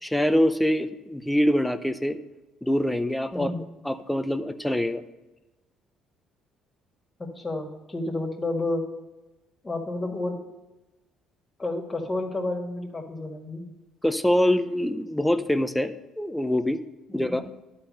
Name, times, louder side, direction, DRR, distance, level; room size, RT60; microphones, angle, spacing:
voice 1, 0.0-2.2 2.6-3.5 3.8-5.0 14.0-16.8 17.1-17.4, left 1 dB, 5° left, 10 dB, 0.6 m, -24 dB
voice 2, 7.2-8.8 9.6-10.4 11.6-13.6 17.1-17.4, left 2 dB, 25° left, 2 dB, 1.9 m, -30 dB
11.0 x 4.3 x 6.6 m, 1.1 s
hypercardioid pair, 60°, 0 cm